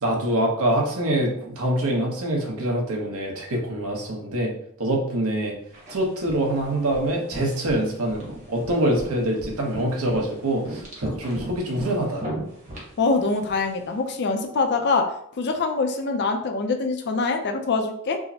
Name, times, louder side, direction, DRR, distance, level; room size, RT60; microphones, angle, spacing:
voice 1, 0.0-4.5 4.8-5.5 5.9-12.2, right 1 dB, 75° right, 0 dB, 0.9 m, -25 dB
sound 1, 5.7-13.9, right 1 dB, 35° right, 1.1 m, -38 dB
voice 2, 13.0-15.1 15.4-18.2, left 3 dB, 50° left, 5 dB, 0.5 m, -24 dB
4.7 x 2.0 x 2.7 m, 0.68 s
head